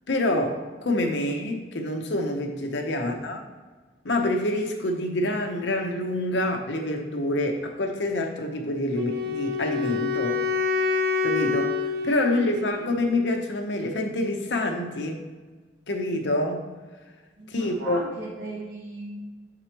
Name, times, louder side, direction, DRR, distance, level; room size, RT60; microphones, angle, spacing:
voice 1, 0.1-3.4 4.0-10.4 11.2-15.3 15.9-16.6 17.5-18.0, left 1 dB, 80° left, 3 dB, 0.8 m, -27 dB
Wind instrument woodwind instrument, 8.9-13.0, left 4 dB, 60° right, 0.5 m, -27 dB
voice 2, 17.4-19.2, right 2 dB, 85° right, -4 dB, 1.4 m, -38 dB
6.7 x 4.8 x 3.0 m, 1.3 s
head